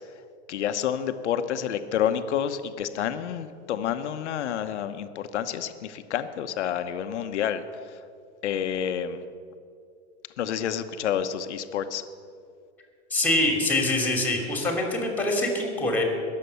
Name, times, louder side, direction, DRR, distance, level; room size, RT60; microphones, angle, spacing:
voice 1, 0.5-7.6 8.4-9.2 10.4-12.0, left 9 dB, 85° left, 9 dB, 1.0 m, -29 dB
voice 2, 13.1-16.0, left 2 dB, 5° left, 2 dB, 2.7 m, -24 dB
21.0 x 7.6 x 6.9 m, 2.2 s
supercardioid pair, 140°, 34 cm